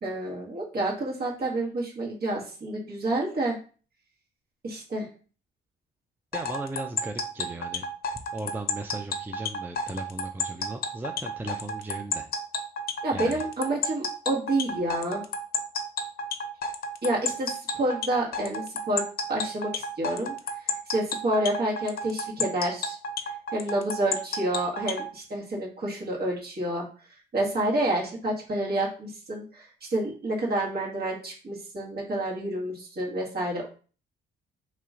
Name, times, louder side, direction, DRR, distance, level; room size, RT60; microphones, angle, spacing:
voice 1, 0.0-3.6 4.6-5.1 13.0-15.2 17.0-20.3 20.6-23.0 23.5-26.9 27.3-33.7, right 1 dB, 50° right, -3 dB, 1.6 m, -29 dB
sound 1, 6.3-25.1, left 3 dB, 50° left, 0.6 m, -31 dB
voice 2, 6.3-7.9 8.1-12.3 13.1-13.5, right 2 dB, 10° right, 5 dB, 0.4 m, -37 dB
3.0 x 2.9 x 3.7 m, 0.38 s
cardioid pair, 90°, 20 cm